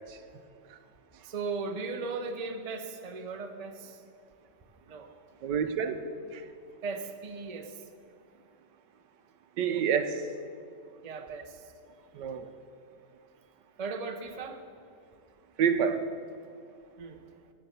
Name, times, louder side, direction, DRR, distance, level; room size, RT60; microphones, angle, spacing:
voice 1, 1.2-4.0 4.9-5.1 6.8-7.8 11.0-11.7 13.8-14.6 17.0-17.2, right 4 dB, 30° right, 5 dB, 0.8 m, -37 dB
voice 2, 5.4-6.5 9.6-10.3 12.1-12.5 15.6-16.1, right 7 dB, 80° right, 10 dB, 1.4 m, -29 dB
15.0 x 9.7 x 6.9 m, 2.4 s
omnidirectional pair, 1.9 m